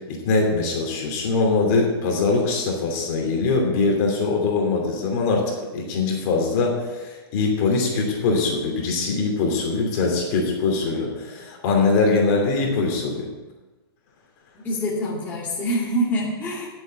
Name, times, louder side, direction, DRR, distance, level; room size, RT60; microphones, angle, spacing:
voice 1, 0.1-13.3, left 3 dB, 35° left, 0 dB, 2.7 m, -22 dB
voice 2, 14.6-16.7, equal, 10° left, -7 dB, 2.4 m, -25 dB
10.5 x 7.7 x 7.2 m, 1.2 s
hypercardioid pair, 165°, 13 cm